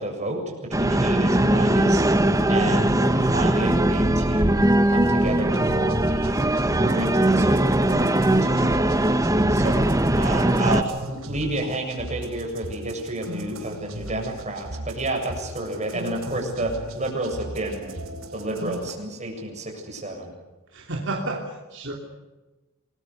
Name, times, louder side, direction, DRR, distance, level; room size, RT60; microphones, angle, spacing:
voice 1, 0.0-4.6 4.9-6.4 6.8-17.9 18.3-20.3, right 1 dB, 35° right, 1 dB, 7.5 m, -31 dB
sound 1, 0.7-10.8, right 1 dB, 15° right, 1.1 m, -20 dB
sound 2, 1.3-18.9, right 1 dB, 85° right, 4.0 m, -37 dB
voice 2, 10.4-11.2 20.7-21.9, right 2 dB, 60° right, 0 dB, 3.1 m, -33 dB
28.0 x 21.5 x 6.7 m, 1.2 s
head